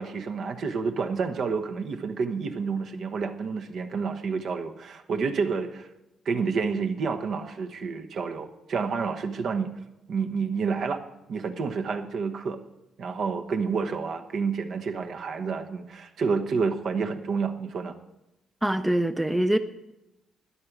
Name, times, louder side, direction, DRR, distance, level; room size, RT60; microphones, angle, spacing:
voice 1, 0.0-5.9 6.2-9.7 10.1-11.0 11.3-12.6 13.0-18.0, right 5 dB, 60° right, 5 dB, 1.1 m, -29 dB
voice 2, 18.6-19.6, right 1 dB, 10° right, 10 dB, 0.6 m, -24 dB
13.0 x 10.0 x 6.0 m, 0.95 s
cardioid pair, 90°, 0 cm